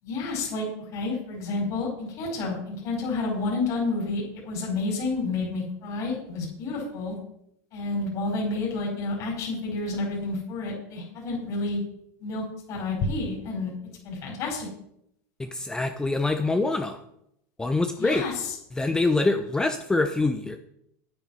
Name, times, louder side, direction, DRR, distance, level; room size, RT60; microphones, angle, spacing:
voice 1, 0.0-7.1 7.7-11.8 12.2-13.7 14.0-14.7 18.0-18.5, left 3 dB, 40° left, -3 dB, 4.8 m, -30 dB
voice 2, 15.4-17.0 17.6-18.3 18.7-20.6, left 3 dB, 10° left, 7 dB, 0.7 m, -25 dB
9.5 x 9.2 x 5.6 m, 0.74 s
supercardioid pair, 140°, 9 cm